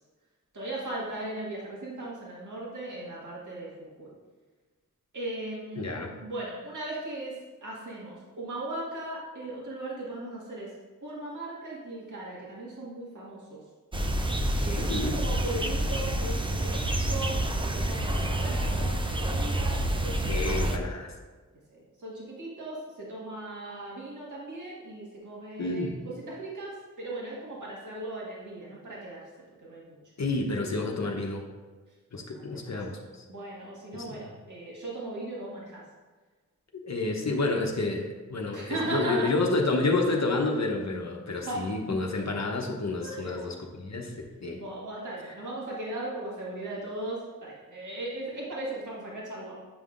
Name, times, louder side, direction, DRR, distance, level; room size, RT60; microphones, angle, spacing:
voice 1, 0.5-3.7 4.0-4.1 5.1-10.7 11.0-13.6 14.6-20.7 21.7-29.2 29.6-30.0 32.3-33.0 33.3-35.8 38.5-39.3 41.4-41.7 43.0-43.5 44.5-49.6, right 2 dB, 70° right, -6 dB, 1.7 m, -38 dB
voice 2, 5.8-6.1 14.8-15.2 20.3-21.1 25.6-26.0 30.2-31.4 32.1-33.0 33.9-34.2 36.8-44.6, left 2 dB, 60° left, 1 dB, 0.9 m, -29 dB
sound 1, 13.9-20.8, right 1 dB, 15° right, 0.5 m, -28 dB
8.8 x 5.5 x 2.5 m, 1.3 s
wide cardioid pair, 80°, 32 cm